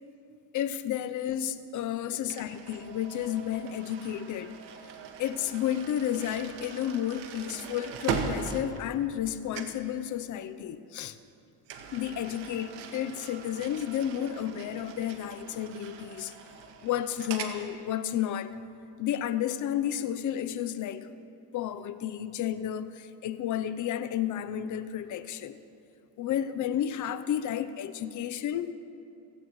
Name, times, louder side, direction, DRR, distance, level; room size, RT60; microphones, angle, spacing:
voice 1, 0.5-4.6 5.2-11.2 11.9-16.3 16.8-18.5 19.0-21.1 21.5-25.6 26.2-28.7, left 10 dB, 50° left, 13 dB, 0.8 m, -32 dB
sound 1, 2.3-9.3 9.5-9.9 11.7-17.6, right 6 dB, 90° right, 1.8 m, -40 dB
27.5 x 16.5 x 3.2 m, 2.6 s
cardioid pair, 135°, 40 cm